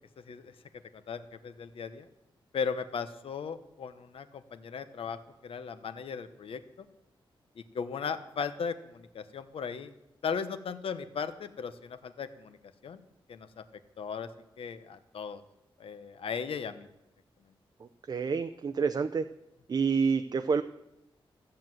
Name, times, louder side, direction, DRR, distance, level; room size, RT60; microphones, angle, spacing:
voice 1, 0.9-2.1 2.5-6.6 7.6-9.9 10.2-12.6 12.8-13.0 13.3-13.6 14.0-14.3 14.6-15.4 15.8-16.9, left 6 dB, 80° left, 11 dB, 0.9 m, -37 dB
voice 2, 17.8-19.2 19.7-20.6, right 5 dB, 45° right, 8 dB, 0.5 m, -28 dB
14.5 x 7.7 x 7.7 m, 0.89 s
wide cardioid pair, 145°, 9 cm